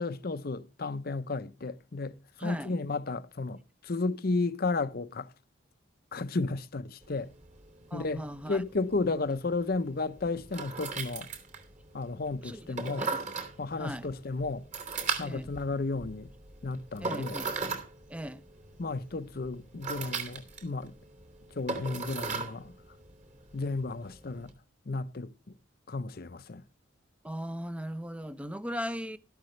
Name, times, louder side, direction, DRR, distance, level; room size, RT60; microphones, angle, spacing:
voice 1, 0.0-5.3 6.1-7.3 7.9-11.3 11.9-13.1 13.6-14.6 15.2-16.3 16.6-17.4 18.8-20.9 21.6-22.7 23.5-24.5 24.9-25.5 25.9-26.6, left 3 dB, 50° left, 0.7 m, -33 dB
voice 2, 2.4-2.8 7.9-8.6 12.4-13.2 13.8-14.1 15.2-15.5 17.0-17.5 18.1-18.4 27.2-29.2, equal, 5° right, 0.6 m, -38 dB
sound 1, 7.0-24.5, right 4 dB, 40° right, 3.0 m, -39 dB
13.0 x 12.0 x 3.2 m
head